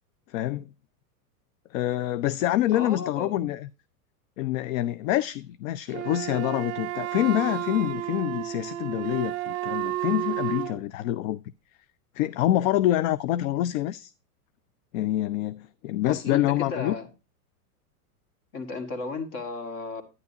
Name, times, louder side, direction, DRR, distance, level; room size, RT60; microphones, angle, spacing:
voice 1, 0.3-0.7 1.7-3.7 4.4-11.4 12.2-14.1 14.9-16.9, left 13 dB, 60° left, 0.5 m, -26 dB
voice 2, 2.7-3.4 16.0-17.1 18.5-20.0, left 4 dB, 40° left, 1.9 m, -34 dB
Wind instrument woodwind instrument, 5.9-10.8, right 14 dB, 35° right, 0.9 m, -32 dB
9.7 x 9.4 x 2.8 m
supercardioid pair, 135°, 47 cm